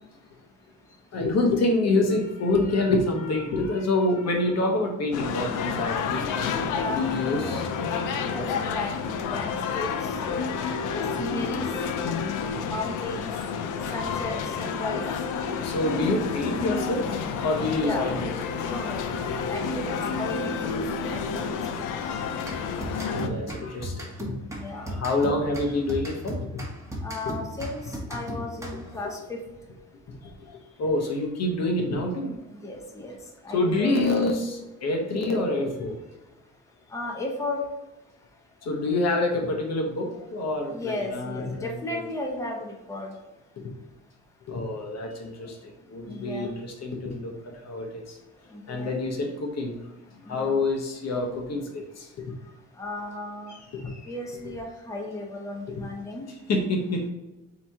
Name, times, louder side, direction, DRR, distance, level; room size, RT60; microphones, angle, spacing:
voice 1, 1.1-6.3 6.9-7.7 12.5-12.6 15.5-18.3 18.6-18.7 19.3-19.6 20.8-20.9 23.1-24.4 24.7-26.4 27.3-27.4 30.2-32.3 33.5-36.0 38.6-42.0 43.6-43.7 44.5-48.2 48.7-49.8 50.2-52.2 53.5-54.1 55.7-55.8 56.5-57.1, left 2 dB, 60° left, 2 dB, 1.0 m, -27 dB
sound 1, 5.1-23.3, left 5 dB, 90° left, 0.5 m, -30 dB
voice 2, 6.7-7.6 8.2-9.0 9.3-9.9 10.9-11.6 12.6-13.3 13.9-15.0 17.8-18.1 18.6-19.1 19.5-21.9 24.5-24.9 27.0-29.4 32.5-33.2 33.4-33.9 36.9-37.7 40.7-43.1 46.1-46.5 48.5-49.0 50.3-50.6 52.8-53.5 54.1-56.2, left 2 dB, 10° left, 0 dB, 0.7 m, -35 dB
sound 2, 22.4-29.1, equal, 10° right, 1.1 m, -36 dB
4.1 x 2.9 x 3.5 m, 1.0 s
cardioid pair, 90°, 30 cm